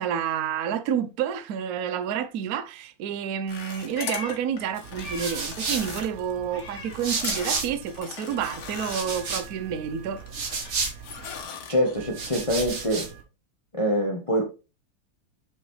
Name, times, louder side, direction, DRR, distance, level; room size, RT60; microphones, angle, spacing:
voice 1, 0.0-10.2, right 8 dB, 65° right, 0.9 m, -29 dB
sound 1, 3.5-9.5 9.9-10.7 11.0-12.0, left 6 dB, 75° left, 2.1 m, -39 dB
Meow, 3.5-5.6 5.9-7.7 7.9-12.1, left 4 dB, 50° left, 2.6 m, -44 dB
sound 2, 4.8-8.0 8.3-11.4 12.0-13.2, right 4 dB, 40° right, 1.5 m, -33 dB
voice 2, 11.7-13.1 13.7-14.4, equal, 20° left, 0.9 m, -25 dB
6.5 x 5.9 x 3.2 m
omnidirectional pair, 2.4 m